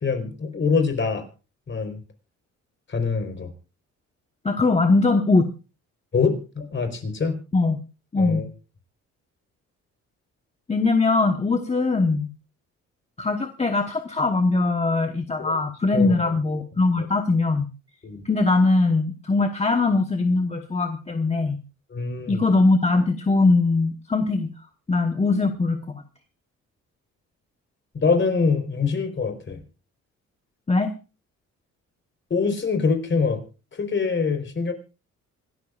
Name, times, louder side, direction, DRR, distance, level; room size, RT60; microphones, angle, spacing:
voice 1, 0.0-1.2 1.7-2.0 2.9-3.5 6.1-7.4 8.2-8.5 15.4-15.6 15.9-16.3 17.0-17.1 18.0-18.3 21.9-22.5 27.9-29.6 32.3-33.4 33.7-34.7, left 4 dB, 40° left, 6 dB, 4.2 m, -24 dB
voice 2, 4.4-5.5 7.5-7.8 8.1-8.4 10.7-12.3 13.2-17.7 18.2-21.6 22.3-24.5 24.9-25.8 30.7-30.9, left 3 dB, 20° left, 6 dB, 1.2 m, -21 dB
26.0 x 12.5 x 2.5 m, 0.33 s
cardioid pair, 90°, 30 cm